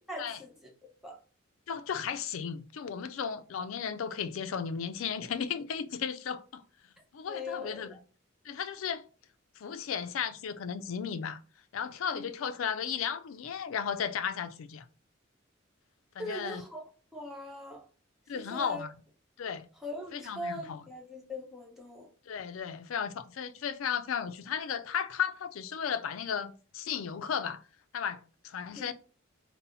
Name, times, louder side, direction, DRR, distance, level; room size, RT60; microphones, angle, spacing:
voice 1, 0.1-0.7 1.0-1.2 7.3-8.0 12.1-12.3 16.2-16.8 17.1-17.8 18.3-18.8 19.8-22.1 28.8-28.9, left 1 dB, ahead, 0.9 m, -41 dB
voice 2, 1.7-6.6 7.1-8.0 8.4-9.1 9.6-11.4 11.7-14.9 16.2-16.6 18.3-18.9 19.4-19.7 20.1-20.8 22.3-27.6 27.9-28.9, left 7 dB, 90° left, 0.4 m, -35 dB
4.1 x 2.0 x 3.9 m
head